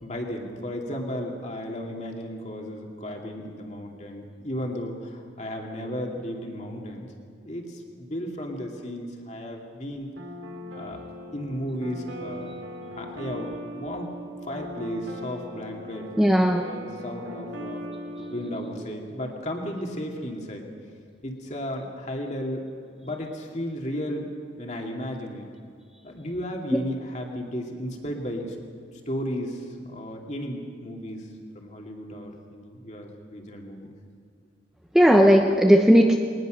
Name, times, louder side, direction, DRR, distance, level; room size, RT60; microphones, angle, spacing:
voice 1, 0.0-7.1 7.4-10.1 10.7-11.0 11.3-12.5 13.0-14.1 14.5-16.1 16.6-17.8 18.2-20.6 21.2-22.6 23.0-24.3 24.6-25.5 26.0-28.6 29.1-31.3 31.5-33.9, equal, 35° left, 1 dB, 2.6 m, -34 dB
sound 1, 10.2-18.9, equal, 80° right, 3.0 m, -39 dB
voice 2, 16.2-16.6 34.9-36.2, equal, 5° right, 2 dB, 0.9 m, -16 dB
21.0 x 19.5 x 6.4 m, 2.3 s
head